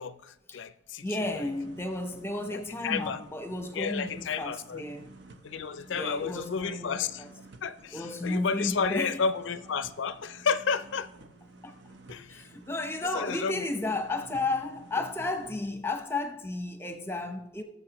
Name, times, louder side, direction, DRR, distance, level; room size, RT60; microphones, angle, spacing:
voice 1, 0.0-1.1 2.5-3.2 3.7-4.8 5.4-7.3 7.6-11.1 12.1-12.5 13.1-13.6, left 5 dB, 75° left, 0.4 m, -31 dB
voice 2, 1.0-5.1 5.9-7.3 7.9-9.2 11.6-11.7 12.1-17.6, left 2 dB, 10° left, 0.8 m, -33 dB
sound 1, 1.1-15.6, right 2 dB, 65° right, 0.8 m, -52 dB
19.5 x 6.9 x 3.0 m
head